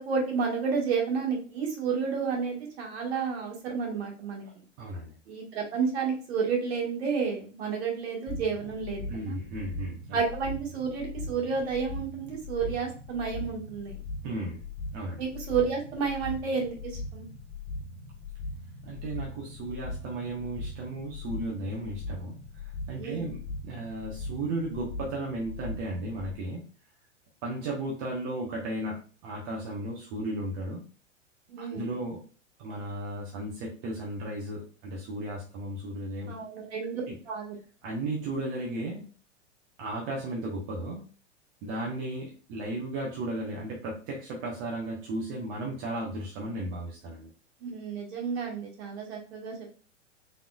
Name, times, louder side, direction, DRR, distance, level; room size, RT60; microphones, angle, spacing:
voice 1, 0.1-4.4 5.3-9.4 10.1-14.0 15.2-16.8 17.1-17.3 23.0-23.3 31.5-31.8 36.3-37.6 47.6-49.5, right 5 dB, 55° right, 0 dB, 1.6 m, -31 dB
voice 2, 4.8-5.1 9.1-10.2 14.2-14.6 14.9-15.2 18.8-22.3 22.9-26.6 27.4-30.8 31.6-32.2 32.6-36.3 37.1-37.2 37.8-39.1 39.8-41.0 41.6-47.3, right 1 dB, 40° right, -3 dB, 1.1 m, -35 dB
sound 1, 8.3-26.3, left 2 dB, 15° left, 1.2 m, -40 dB
4.3 x 3.6 x 2.4 m, 0.37 s
figure-of-eight pair, 105°, 37 cm